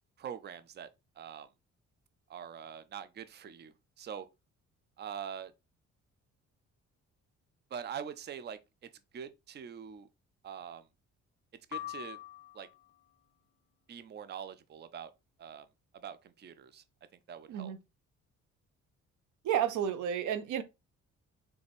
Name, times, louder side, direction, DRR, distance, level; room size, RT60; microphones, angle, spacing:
voice 1, 0.2-0.9 1.2-1.5 2.3-4.3 5.0-5.5 7.7-8.6 9.1-10.1 10.4-10.9 11.7-12.2 12.5-12.7 13.9-15.1 15.4-15.7 16.0-16.8 17.3-17.7, right 8 dB, 35° right, 0.5 m, -43 dB
sound 1, 11.7-13.0, left 14 dB, 50° left, 0.5 m, -43 dB
voice 2, 19.4-20.6, right 9 dB, 75° right, 0.6 m, -31 dB
4.0 x 3.4 x 3.4 m
cardioid pair, 90°, 30 cm